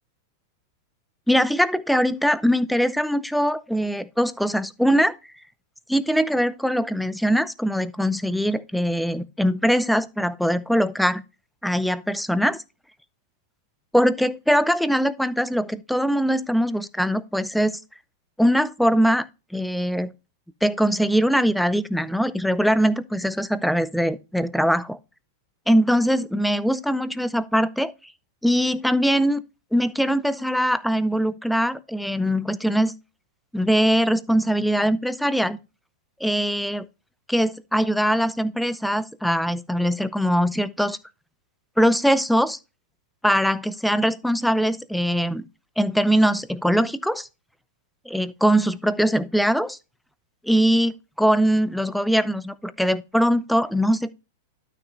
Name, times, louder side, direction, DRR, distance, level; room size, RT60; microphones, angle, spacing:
voice 1, 1.3-5.2 5.9-11.2 11.6-12.6 13.9-17.7 18.4-19.3 19.5-20.1 20.6-25.0 25.7-27.9 28.4-29.4 29.7-32.9 33.5-35.6 36.2-36.8 37.3-41.0 41.8-42.6 43.2-45.4 45.8-47.3 48.1-49.8 50.4-54.1, equal, ahead, 0.6 m, -22 dB
12.5 x 6.1 x 2.5 m
hypercardioid pair, 100°, 0 cm